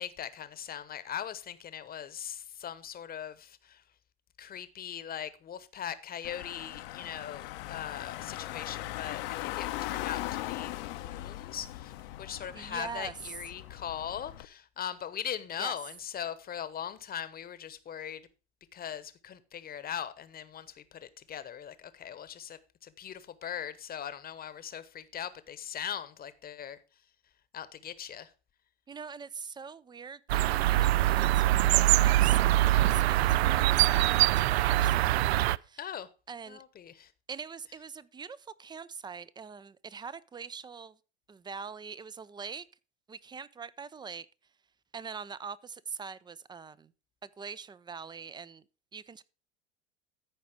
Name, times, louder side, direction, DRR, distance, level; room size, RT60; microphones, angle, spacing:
voice 1, 0.0-3.8 4.4-11.9 12.2-18.2 18.7-26.8 27.5-28.3 35.8-36.1 36.5-37.1, left 9 dB, 25° left, 1.0 m, -40 dB
Car / Engine, 6.2-14.4, left 16 dB, 55° left, 0.8 m, -39 dB
voice 2, 12.3-13.1 15.6-15.7 28.9-35.3 35.6-35.8 36.3-36.6 37.3-41.0 41.3-42.7 43.1-44.3 44.9-46.9 47.2-48.6 48.9-49.2, right 5 dB, 15° right, 0.4 m, -43 dB
sound 1, 30.3-35.6, right 15 dB, 70° right, 0.4 m, -23 dB
14.0 x 5.1 x 5.0 m
hypercardioid pair, 85°, 33 cm